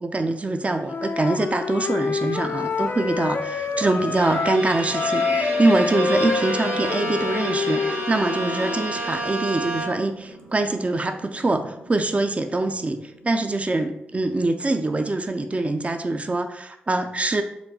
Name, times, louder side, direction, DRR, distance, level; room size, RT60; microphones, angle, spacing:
voice 1, 0.0-17.4, right 2 dB, 30° right, 7 dB, 0.4 m, -24 dB
Wind instrument woodwind instrument, 0.8-4.7 4.9-8.9, left 5 dB, 45° left, 0.3 m, -27 dB
sound 1, 2.4-14.9, right 1 dB, 80° right, 0.9 m, -41 dB
Bowed string instrument, 4.1-10.2, right 2 dB, 45° right, 0.9 m, -31 dB
3.9 x 2.3 x 4.5 m, 0.82 s
supercardioid pair, 40°, 5 cm